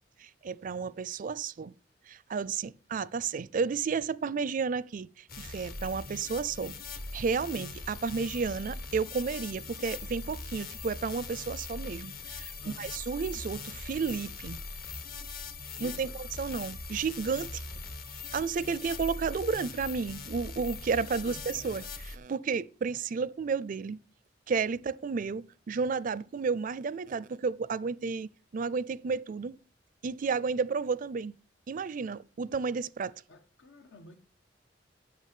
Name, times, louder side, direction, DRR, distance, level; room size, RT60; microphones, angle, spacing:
voice 1, 0.2-1.7 2.1-5.1 5.4-6.8 7.1-14.6 15.8-17.6 18.3-24.0 24.5-29.5 30.0-31.3 31.7-33.1, right 5 dB, 45° right, 0.4 m, -32 dB
sound 1, 5.3-22.2, left 3 dB, 55° left, 1.2 m, -41 dB
voice 2, 12.6-12.9 15.8-16.2 21.2-21.4 33.3-34.2, equal, 85° left, 1.3 m, -49 dB
8.5 x 6.1 x 8.3 m
head